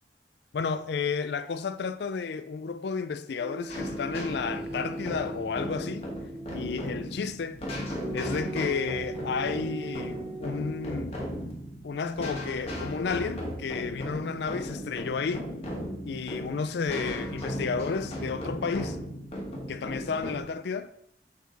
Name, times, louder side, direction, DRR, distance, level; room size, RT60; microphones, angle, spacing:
voice 1, 0.5-6.1 6.5-7.6 8.1-11.2 11.8-15.5 16.0-19.0 19.7-20.9, left 5 dB, 70° left, 0.4 m, -32 dB
sound 1, 3.4-6.9 8.0-11.1 12.2-12.6, right 2 dB, 30° right, 0.6 m, -40 dB
sound 2, 3.7-20.4, equal, 35° left, 1.5 m, -36 dB
6.4 x 4.6 x 4.0 m
head